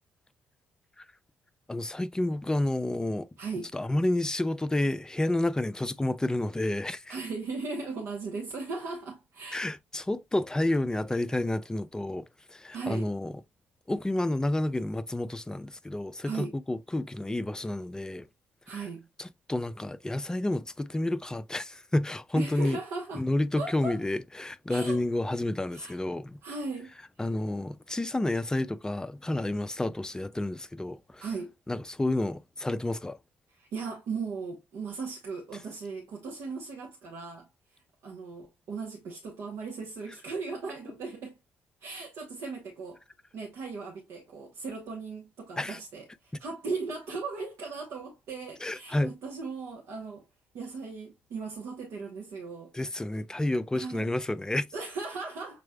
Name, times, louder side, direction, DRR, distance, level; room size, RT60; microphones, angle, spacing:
voice 1, 1.7-3.3 3.7-7.2 9.5-13.3 13.9-18.3 19.2-22.8 23.1-26.4 27.2-31.2 31.7-33.2 45.6-45.8 48.6-49.1 52.7-54.7, left 1 dB, 10° left, 0.5 m, -30 dB
voice 2, 3.4-3.7 7.1-9.7 12.7-13.1 16.2-16.5 18.7-19.0 22.4-23.3 23.6-24.0 24.7-25.0 25.7-25.9 26.4-27.3 31.2-31.5 33.6-41.4 41.8-43.0 43.3-50.2 50.5-52.7 53.7-54.1 54.7-55.6, right 4 dB, 60° right, 1.1 m, -37 dB
6.7 x 3.1 x 2.2 m
figure-of-eight pair, 45°, 5 cm